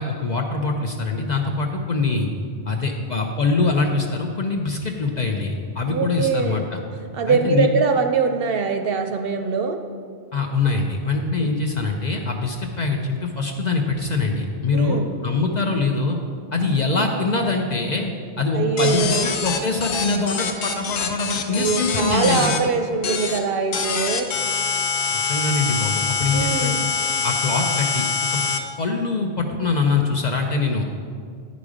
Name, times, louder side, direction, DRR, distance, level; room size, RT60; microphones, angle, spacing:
voice 1, 0.0-2.3 2.7-6.8 7.3-7.7 10.3-16.2 16.5-18.1 18.4-22.5 25.1-26.7 27.2-28.4 28.8-30.8, left 3 dB, 50° left, 2 dB, 0.6 m, -23 dB
voice 2, 5.9-6.7 7.1-9.8 11.4-11.5 14.7-15.1 18.5-19.3 21.5-24.3 26.3-26.8, right 5 dB, 65° right, 6 dB, 0.7 m, -23 dB
sound 1, 18.8-22.6 23.0-23.4 23.7-28.6, left 5 dB, 75° left, 0.9 m, -25 dB
9.8 x 5.1 x 4.9 m, 2.2 s
omnidirectional pair, 1.2 m